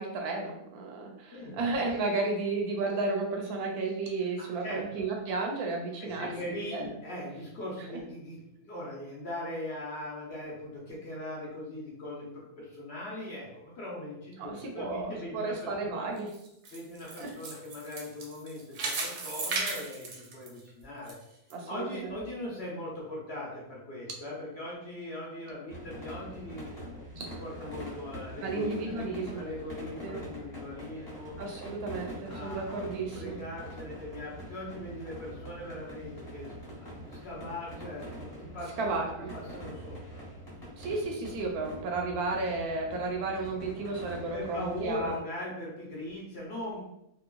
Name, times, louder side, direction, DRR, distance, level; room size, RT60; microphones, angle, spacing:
voice 1, 0.0-6.3 6.7-6.9 7.9-8.0 14.4-16.3 17.2-17.3 21.5-22.2 27.2-27.3 28.4-29.4 30.0-30.2 31.4-33.4 38.8-39.3 40.8-45.2, right 3 dB, 85° right, 1 dB, 1.1 m, -33 dB
voice 2, 4.4-4.8 6.0-16.0 16.7-21.2 21.7-26.7 27.4-29.0 29.3-31.3 32.3-32.9 33.1-36.5 37.2-38.1 38.4-39.0 39.3-40.2 44.3-46.8, left 1 dB, 55° left, -4 dB, 0.8 m, -40 dB
sound 1, 16.2-21.1 21.5-21.6 22.2-22.3, right 3 dB, 65° right, 0.9 m, -36 dB
sound 2, 25.7-45.2, equal, ahead, 1.2 m, -44 dB
3.0 x 2.3 x 2.2 m, 0.81 s
omnidirectional pair, 1.6 m